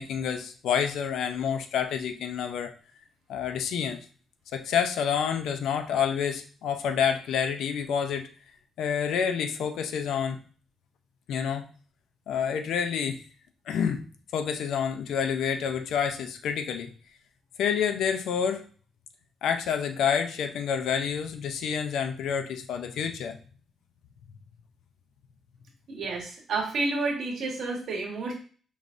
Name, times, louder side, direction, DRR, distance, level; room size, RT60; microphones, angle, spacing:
voice 1, 0.0-2.7 3.3-4.0 4.5-8.3 8.8-10.4 11.3-11.7 12.3-13.2 13.7-14.0 14.3-16.9 17.6-18.7 19.4-23.4, left 7 dB, 80° left, 7 dB, 0.5 m, -28 dB
voice 2, 25.9-28.3, right 3 dB, 65° right, -1 dB, 1.5 m, -30 dB
5.1 x 3.1 x 2.6 m, 0.41 s
cardioid pair, 125°, 0 cm